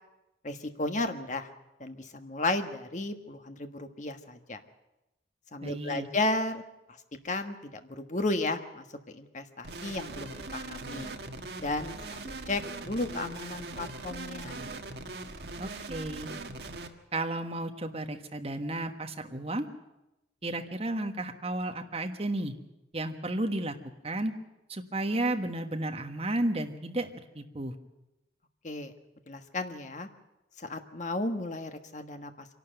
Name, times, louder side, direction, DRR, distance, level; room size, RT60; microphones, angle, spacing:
voice 1, 0.4-1.5 1.8-4.6 5.5-6.6 7.2-11.1 11.6-14.6 28.6-28.9 29.3-30.1 30.6-32.5, left 2 dB, 45° left, 7 dB, 1.4 m, -34 dB
voice 2, 5.6-6.1 15.6-16.3 17.1-19.7 20.4-22.5 22.9-23.7 24.0-24.3 24.7-27.7, right 1 dB, 35° right, 5 dB, 1.4 m, -33 dB
sound 1, 9.6-16.9, right 3 dB, 60° right, 1.5 m, -40 dB
25.5 x 12.0 x 9.1 m, 0.94 s
head